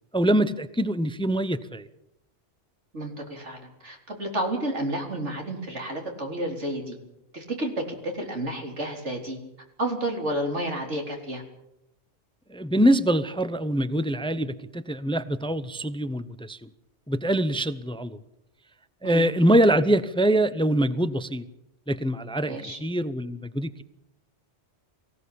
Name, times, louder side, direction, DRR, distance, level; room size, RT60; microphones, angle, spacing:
voice 1, 0.1-1.9 12.5-16.7 17.1-18.2 19.0-21.4 21.9-23.8, right 1 dB, 5° left, 14 dB, 0.7 m, -24 dB
voice 2, 2.9-7.0 7.3-9.4 9.8-11.4 19.0-19.3 22.5-22.8, right 1 dB, 90° right, 2 dB, 4.4 m, -31 dB
23.0 x 16.5 x 8.6 m, 0.84 s
omnidirectional pair, 1.2 m